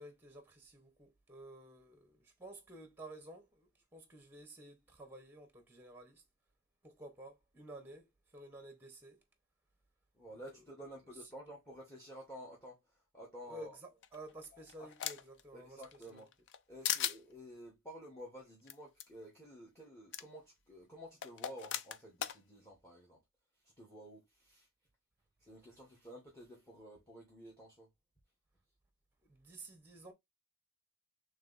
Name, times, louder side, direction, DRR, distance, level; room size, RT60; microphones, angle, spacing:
voice 1, 0.0-6.2 6.8-9.2 13.4-16.2 29.2-30.1, right 1 dB, 10° right, 0.9 m, -52 dB
voice 2, 10.1-13.8 14.8-14.9 15.5-16.3 16.7-23.2 23.8-24.7 25.4-27.9, equal, 15° left, 1.2 m, -52 dB
sound 1, 14.0-15.4 15.8-16.6 16.8-17.2 18.7-18.8 19.0-19.1 20.1-20.2 21.2-22.4, left 10 dB, 55° left, 0.4 m, -38 dB
3.2 x 3.2 x 3.9 m
head